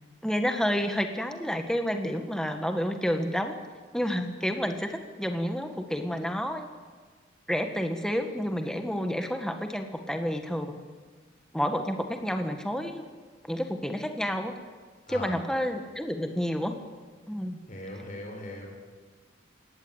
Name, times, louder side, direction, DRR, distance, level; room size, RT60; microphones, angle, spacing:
voice 1, 0.2-3.5 3.9-6.7 7.5-10.7 11.5-13.0 13.5-14.5 15.1-16.7 17.3-17.6, equal, 5° left, 5 dB, 1.6 m, -29 dB
voice 2, 17.7-18.7, left 1 dB, 40° left, 0 dB, 5.1 m, -39 dB
20.0 x 16.5 x 8.9 m, 1.4 s
head